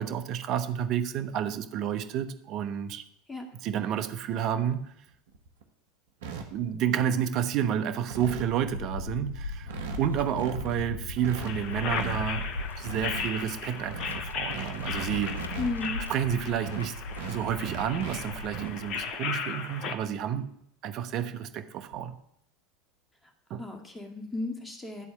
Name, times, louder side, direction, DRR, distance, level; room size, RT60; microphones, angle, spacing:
voice 1, 0.0-3.0 3.6-4.9 6.5-12.5 12.8-15.5 16.1-17.0 17.3-20.5 20.8-22.1 23.5-23.6, right 9 dB, 50° right, 1.0 m, -30 dB
sound 1, 4.8-4.9 5.3-5.6 6.2-6.4 7.1-7.4 7.8-7.9 8.1-8.5 9.1-9.2 9.4-9.5 9.7-10.0 10.2-10.7 11.2-12.2 12.6-13.3 13.7-16.2 16.6-18.2 18.4-18.7 20.1-20.2 20.6-20.7 21.9-22.1, right 6 dB, 75° right, 1.4 m, -38 dB
sound 2, 8.3-19.1, left 2 dB, 90° left, 0.5 m, -38 dB
sound 3, 11.4-20.0, left 6 dB, 50° left, 1.0 m, -36 dB
voice 2, 15.6-16.1 23.6-25.1, left 2 dB, 15° left, 2.0 m, -34 dB
11.0 x 4.3 x 7.2 m
hypercardioid pair, 80°, 0 cm